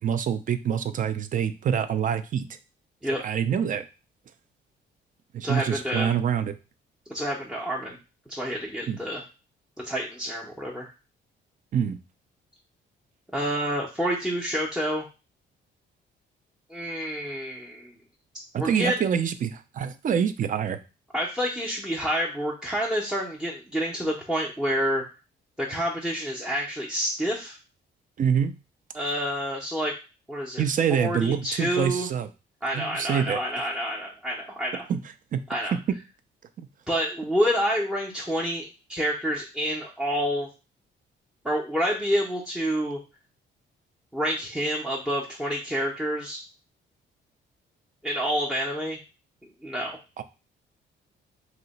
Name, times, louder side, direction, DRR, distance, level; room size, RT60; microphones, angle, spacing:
voice 1, 0.0-2.5 3.2-3.8 5.3-6.6 8.9-9.0 11.7-12.0 18.5-20.8 28.2-28.5 30.6-32.3 32.7-33.4 34.9-35.0 35.3-35.4 36.6-36.7 50.2-50.3, right 8 dB, 40° right, 11 dB, 0.4 m, -26 dB
voice 2, 5.4-6.1 7.1-8.0 8.3-9.2 9.8-10.9 13.3-15.1 16.7-18.0 18.6-19.0 21.1-25.0 25.6-27.6 28.9-29.9 30.3-30.6 30.9-32.1 32.6-34.9 35.5-35.7 36.9-40.5 41.4-43.0 44.1-46.4 48.0-49.0 49.6-50.0, equal, ahead, -3 dB, 0.6 m, -28 dB
2.7 x 2.1 x 3.9 m, 0.30 s
cardioid pair, 90°, 20 cm